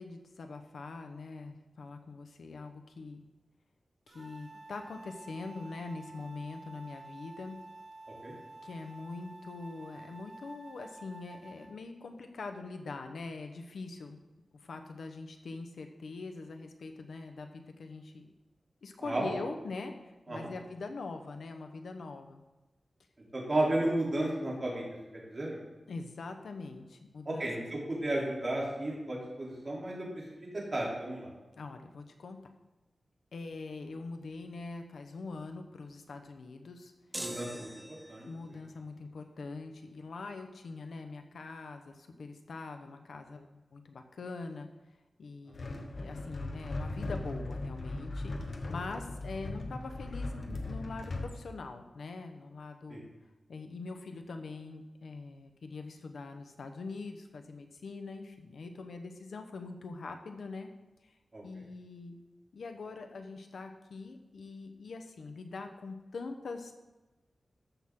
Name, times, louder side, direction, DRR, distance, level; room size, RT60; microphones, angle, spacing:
voice 1, 0.0-3.2 4.1-7.6 8.6-14.2 14.6-18.3 18.8-22.4 25.9-27.5 31.6-32.5 33.3-36.9 38.2-44.7 45.2-53.0 53.5-60.7 61.0-61.2 61.4-62.2 62.5-66.7, left 3 dB, 85° left, 5 dB, 1.0 m, -43 dB
sound 1, 4.1-11.7, right 2 dB, 60° right, 3.3 m, -50 dB
voice 2, 23.3-24.8 25.1-25.6 27.2-31.3 37.2-38.3 52.9-53.0 61.3-61.4, right 1 dB, 40° right, -4 dB, 3.4 m, -33 dB
sound 2, 37.1-38.4, right 1 dB, 10° right, 0.4 m, -42 dB
sound 3, 45.5-51.3, left 2 dB, 60° left, 1.2 m, -38 dB
14.0 x 6.1 x 3.8 m, 1.1 s
wide cardioid pair, 100°, 0 cm